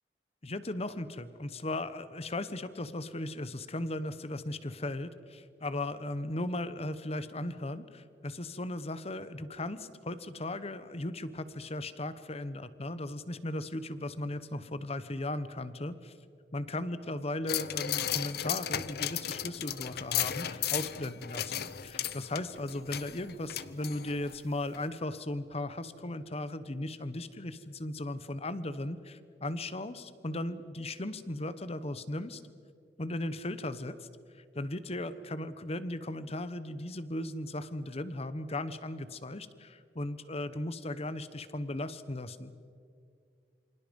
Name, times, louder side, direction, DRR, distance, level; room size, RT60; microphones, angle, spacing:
voice 1, 0.4-16.1 16.5-32.4 33.0-34.1 34.3-42.5, left 1 dB, 35° left, 13 dB, 1.1 m, -37 dB
sound 1, 17.5-24.4 24.7-24.8, left 10 dB, 60° left, 0.8 m, -35 dB
28.0 x 25.5 x 5.4 m, 2.3 s
head